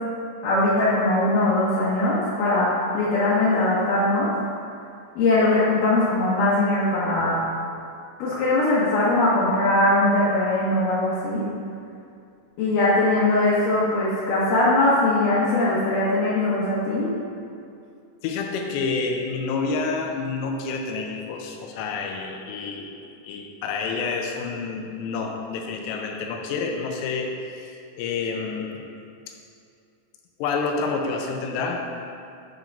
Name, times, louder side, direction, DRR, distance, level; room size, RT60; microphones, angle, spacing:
voice 1, 0.4-4.3 5.2-7.4 8.2-11.4 12.6-17.1, left 2 dB, 65° left, -9 dB, 2.3 m, -21 dB
voice 2, 18.2-28.8 30.4-31.8, left 4 dB, 85° left, 2 dB, 2.9 m, -29 dB
10.0 x 3.8 x 5.2 m, 2.4 s
omnidirectional pair, 4.9 m